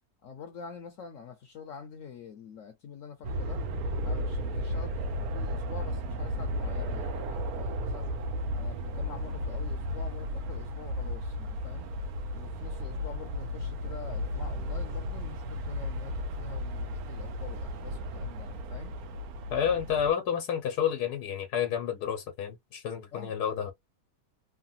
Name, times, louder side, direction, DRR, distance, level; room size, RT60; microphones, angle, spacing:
voice 1, 0.2-3.6 4.0-5.0 5.3-8.2 8.5-11.9 12.3-18.9 23.1-23.3, left 6 dB, 65° left, 0.9 m, -46 dB
sound 1, 3.2-20.1, equal, 75° right, 1.1 m, -34 dB
voice 2, 19.5-23.7, left 8 dB, 90° left, 1.3 m, -30 dB
3.2 x 2.1 x 2.6 m
omnidirectional pair, 1.6 m